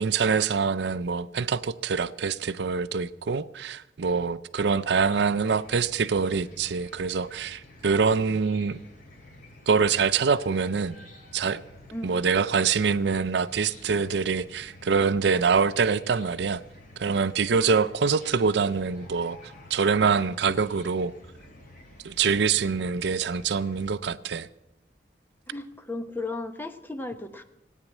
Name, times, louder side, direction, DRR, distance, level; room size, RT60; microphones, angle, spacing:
voice 1, 0.0-8.8 9.7-11.0 11.3-11.6 12.0-16.6 17.0-19.4 19.7-21.1 22.0-24.5, right 5 dB, 70° right, 0.5 m, -25 dB
Chicken rooster / Cricket, 4.8-23.9, left 1 dB, 50° left, 3.1 m, -50 dB
voice 2, 11.9-12.3 17.7-18.0 25.5-27.4, left 2 dB, 10° left, 0.9 m, -36 dB
18.0 x 9.2 x 7.2 m
head